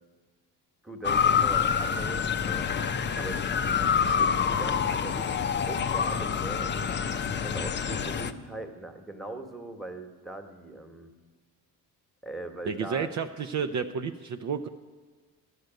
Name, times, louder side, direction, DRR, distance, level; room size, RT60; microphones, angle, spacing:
voice 1, 0.8-2.7 3.2-7.0 7.4-11.1 12.2-13.1, right 2 dB, ahead, 4 dB, 1.3 m, -41 dB
Motor vehicle (road) / Siren, 1.0-8.3, left 7 dB, 30° left, 0.5 m, -27 dB
voice 2, 12.7-14.7, right 6 dB, 45° right, 7 dB, 0.6 m, -31 dB
12.0 x 6.6 x 9.1 m, 1.4 s
cardioid pair, 100°, 39 cm